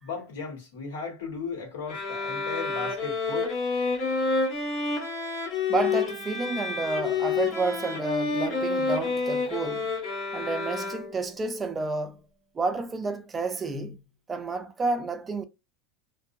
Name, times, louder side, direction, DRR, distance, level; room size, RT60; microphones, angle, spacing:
voice 1, 0.0-3.5, left 5 dB, 80° left, 1.6 m, -36 dB
sound 1, 1.9-11.3, left 4 dB, 35° left, 1.2 m, -29 dB
voice 2, 5.7-9.9 10.3-12.2 12.5-14.0 14.3-15.4, right 3 dB, 15° right, 0.4 m, -30 dB
2.6 x 2.3 x 2.7 m
supercardioid pair, 155°, 0 cm